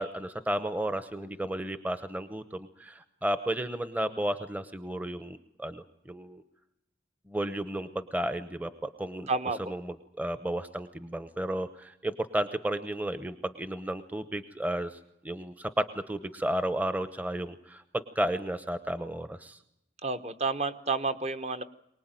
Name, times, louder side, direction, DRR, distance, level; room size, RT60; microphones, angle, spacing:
voice 1, 0.0-6.4 7.3-9.3 9.7-15.0 15.2-19.6, right 1 dB, 10° right, 11 dB, 0.9 m, -33 dB
voice 2, 9.3-9.6 20.0-21.6, right 3 dB, 35° right, 10 dB, 1.1 m, -30 dB
24.0 x 19.5 x 9.1 m, 0.83 s
head